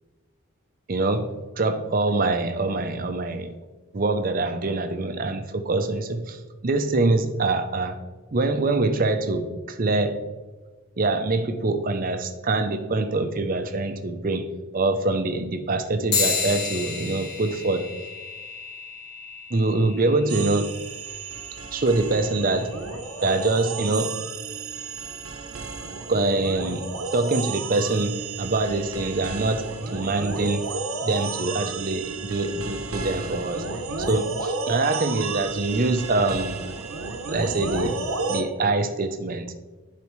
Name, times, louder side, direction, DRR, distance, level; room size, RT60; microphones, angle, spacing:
voice 1, 0.9-3.5 3.9-8.0 8.3-10.2 11.0-14.5 14.7-17.9 19.5-20.7 21.7-22.8 23.2-24.2 26.1-30.7 31.0-33.7 34.0-36.6 37.3-38.0 38.3-39.5, right 2 dB, 40° right, 9 dB, 0.5 m, -24 dB
sound 1, 16.1-25.9, left 5 dB, 50° left, 1.4 m, -34 dB
sound 2, 20.3-38.4, right 4 dB, 75° right, 0.7 m, -32 dB
10.5 x 4.2 x 3.1 m, 1.3 s
head